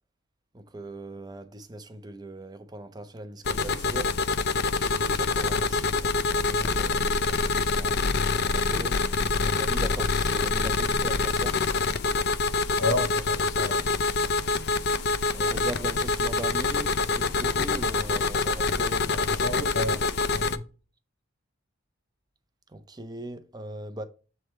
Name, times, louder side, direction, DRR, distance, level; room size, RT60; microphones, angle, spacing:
voice 1, 0.5-4.4 4.7-9.0 9.4-11.6 15.3-19.4 22.7-24.0, right 1 dB, 20° right, 0.6 m, -39 dB
sound 1, 3.4-20.6, left 4 dB, 50° left, 0.4 m, -26 dB
voice 2, 12.8-13.9 19.3-20.6, left 2 dB, 75° left, 1.8 m, -31 dB
7.6 x 3.3 x 4.3 m
head